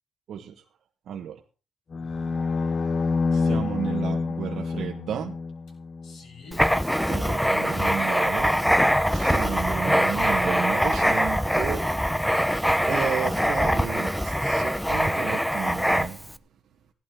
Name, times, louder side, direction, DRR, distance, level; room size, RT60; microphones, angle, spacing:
voice 1, 0.3-0.6 1.1-1.4 3.3-5.4 7.1-8.5 9.1-12.3 12.8-16.2, right 8 dB, 80° right, 1.4 m, -33 dB
sound 1, 1.9-6.2, left 4 dB, 50° left, 1.0 m, -27 dB
voice 2, 2.0-2.7 6.0-7.9, left 3 dB, 80° left, 7.6 m, -48 dB
Writing, 6.5-16.3, equal, ahead, 0.7 m, -23 dB
16.0 x 12.0 x 3.9 m
cardioid pair, 100°, 0 cm